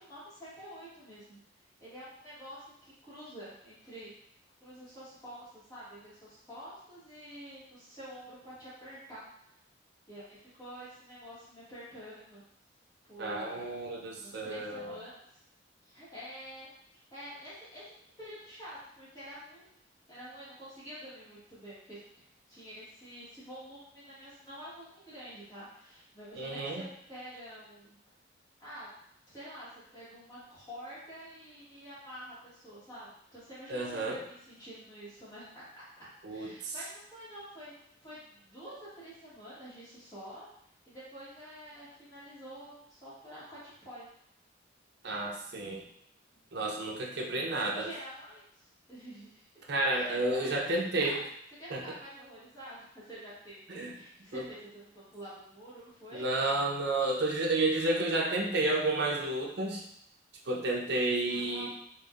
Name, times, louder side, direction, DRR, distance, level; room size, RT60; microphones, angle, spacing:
voice 1, 0.0-1.4 1.8-4.1 4.6-9.2 10.1-12.4 13.1-13.7 14.1-15.1 15.8-16.7 17.1-17.8 18.2-19.7 20.1-22.0 22.5-28.0 28.6-28.9 29.3-35.8 36.3-37.7 38.0-40.5 40.9-44.1 46.3-46.4 47.1-49.5 49.9-51.2 51.6-56.2 61.2-61.7, equal, 20° left, -11 dB, 1.3 m, -48 dB
voice 2, 13.2-15.0 26.4-26.8 33.7-34.2 36.2-36.7 45.0-45.9 46.5-47.9 49.7-51.2 51.7-51.8 53.7-54.0 54.3-54.5 56.1-59.8 60.5-61.7, right 2 dB, 60° right, 0 dB, 0.6 m, -31 dB
4.5 x 2.5 x 2.5 m, 0.73 s
head